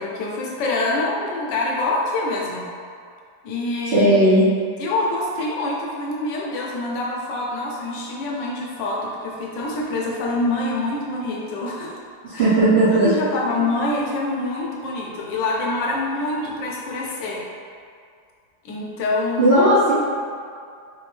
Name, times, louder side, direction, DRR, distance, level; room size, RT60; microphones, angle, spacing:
voice 1, 0.0-2.7 3.4-4.1 4.8-11.9 12.3-12.5 12.9-17.4 18.6-19.6, left 2 dB, 70° left, -3 dB, 1.2 m, -25 dB
voice 2, 3.9-4.4 12.2-13.1 13.5-13.7 19.4-19.9, right 1 dB, 60° right, -13 dB, 0.6 m, -16 dB
3.9 x 3.4 x 3.2 m, 2.2 s
omnidirectional pair, 2.3 m